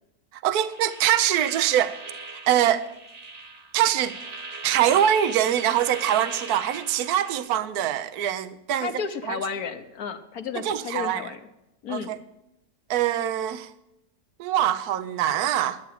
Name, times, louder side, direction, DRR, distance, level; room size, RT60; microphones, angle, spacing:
voice 1, 0.3-2.0 2.5-2.9 3.7-4.2 4.6-8.9 9.3-9.4 10.5-11.2 11.9-12.2 12.9-13.7 14.4-15.8, right 11 dB, 70° right, 1.2 m, -23 dB
sound 1, 0.7-7.5, right 3 dB, 30° right, 0.9 m, -39 dB
voice 2, 8.8-11.4 11.8-12.2, left 6 dB, 65° left, 1.5 m, -32 dB
11.5 x 9.1 x 7.4 m
omnidirectional pair, 1.7 m